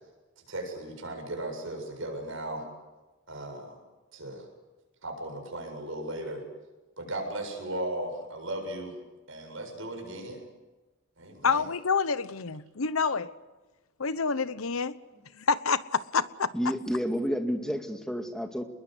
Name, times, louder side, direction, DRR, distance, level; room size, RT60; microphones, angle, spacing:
voice 1, 0.4-2.7 3.3-3.8 4.1-4.5 5.0-6.4 7.0-9.0 9.3-10.4 11.2-11.7 15.1-15.2, right 1 dB, 70° right, 3 dB, 7.8 m, -36 dB
voice 2, 11.4-13.3 14.0-15.0 15.4-16.5, left 5 dB, 80° left, 15 dB, 1.0 m, -27 dB
voice 3, 16.5-18.6, equal, 5° left, 4 dB, 2.1 m, -30 dB
28.0 x 21.5 x 8.1 m, 1.2 s
head